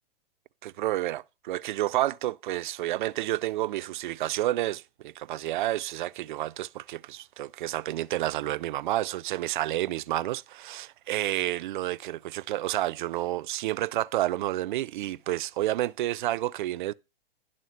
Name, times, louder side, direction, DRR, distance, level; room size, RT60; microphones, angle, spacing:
voice 1, 0.6-16.9, right 15 dB, 55° right, 0.5 m, -30 dB
11.0 x 3.7 x 6.3 m
hypercardioid pair, 130°, 29 cm